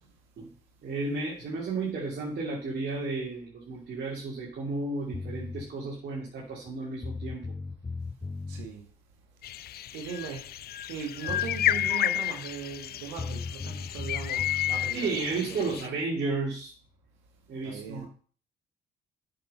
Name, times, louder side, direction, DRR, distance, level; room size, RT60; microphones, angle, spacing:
voice 1, 0.8-7.4 14.9-16.7 17.5-18.1, right 3 dB, 55° right, 2.7 m, -33 dB
sound 1, 5.1-5.7 6.7-6.8 7.0-8.7 10.9-11.0 11.3-11.9 13.2-14.9, left 3 dB, 20° left, 0.7 m, -37 dB
voice 2, 8.5-8.8 9.9-10.5 10.9-15.7 17.6-18.1, right 7 dB, 85° right, 1.6 m, -39 dB
sound 2, 9.4-15.9, left 12 dB, 55° left, 0.5 m, -31 dB
7.9 x 6.6 x 5.5 m
hypercardioid pair, 50°, 20 cm